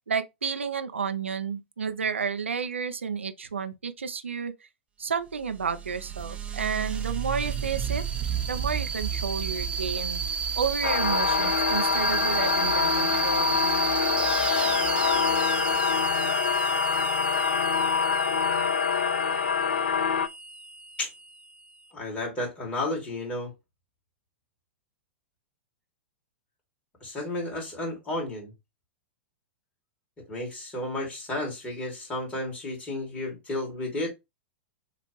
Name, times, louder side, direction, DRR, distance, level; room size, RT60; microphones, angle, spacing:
voice 1, 0.1-4.5 5.0-8.0 8.4-10.2 10.6-13.7, right 6 dB, 80° right, 0.5 m, -31 dB
sound 1, 5.4-21.7, right 5 dB, 15° right, 0.8 m, -31 dB
sound 2, 10.8-20.3, left 7 dB, 75° left, 0.4 m, -25 dB
voice 2, 21.9-23.5 27.0-28.5 30.3-34.1, left 1 dB, 20° left, 2.7 m, -32 dB
6.6 x 2.5 x 3.1 m
figure-of-eight pair, 100°, 7 cm